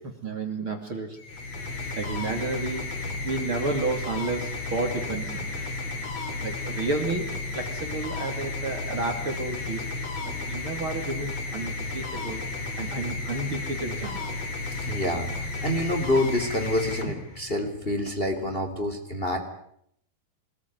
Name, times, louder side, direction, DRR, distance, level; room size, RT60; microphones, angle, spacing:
voice 1, 0.0-1.2 1.7-5.5 6.4-9.9 10.5-12.4 12.8-14.3, right 3 dB, 35° right, 5 dB, 3.2 m, -31 dB
sound 1, 1.2-17.7, left 3 dB, 45° left, 4.8 m, -33 dB
voice 2, 14.6-19.4, left 1 dB, 15° left, 5 dB, 3.4 m, -27 dB
26.5 x 21.0 x 9.7 m, 0.72 s
omnidirectional pair, 4.3 m